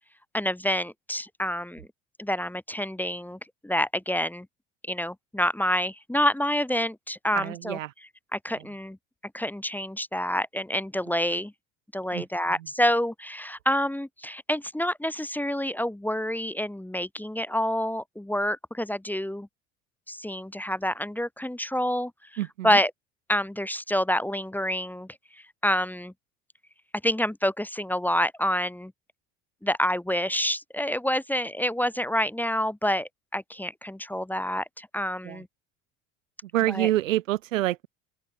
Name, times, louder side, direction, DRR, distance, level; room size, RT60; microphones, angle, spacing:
voice 1, 0.3-1.9 2.2-4.5 4.9-7.8 8.3-9.0 9.3-11.5 11.9-19.5 20.1-22.1 22.6-22.9 23.3-25.1 25.6-26.1 27.0-28.9 29.6-35.5 36.7-36.9, equal, 5° left, 1.9 m, -28 dB
voice 2, 7.3-7.9 8.5-8.7 11.3-11.4 12.1-12.7 22.4-22.8 35.2-35.4 36.4-37.9, right 15 dB, 80° right, 3.0 m, -28 dB
open air
hypercardioid pair, 65°, 39 cm